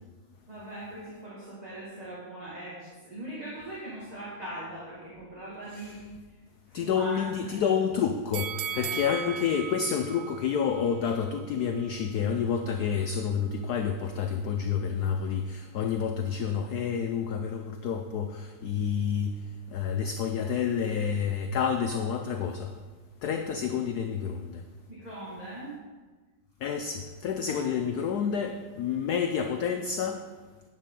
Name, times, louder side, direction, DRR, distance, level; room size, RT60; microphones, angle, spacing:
voice 1, 0.5-6.0 6.3-6.4 6.7-7.7 8.7-9.5 24.9-25.8 27.5-27.7, right 1 dB, 20° right, -8 dB, 2.1 m, -41 dB
voice 2, 6.7-19.4 19.7-22.7 23.2-24.6 26.6-30.2, left 7 dB, 75° left, 6 dB, 0.9 m, -29 dB
sound 1, 8.3-11.4 11.8-11.9, right 9 dB, 75° right, 1.2 m, -37 dB
10.5 x 9.2 x 3.8 m, 1.4 s
omnidirectional pair, 2.3 m